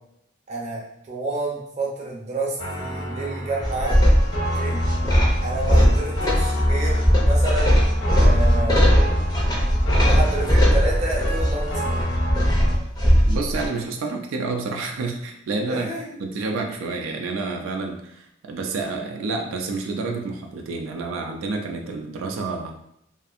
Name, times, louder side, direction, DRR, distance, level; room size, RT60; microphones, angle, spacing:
voice 1, 0.5-4.0 4.4-4.8 5.4-8.9 9.5-12.1 15.7-16.1, right 2 dB, 35° right, -3 dB, 0.6 m, -30 dB
sound 1, 2.6-12.8, equal, 75° left, 1.1 m, -27 dB
sound 2, 3.6-13.7, equal, 20° left, 0.5 m, -19 dB
voice 2, 13.2-15.9 16.2-22.8, right 3 dB, 90° right, 3 dB, 0.3 m, -29 dB
2.5 x 2.4 x 2.4 m, 0.77 s
head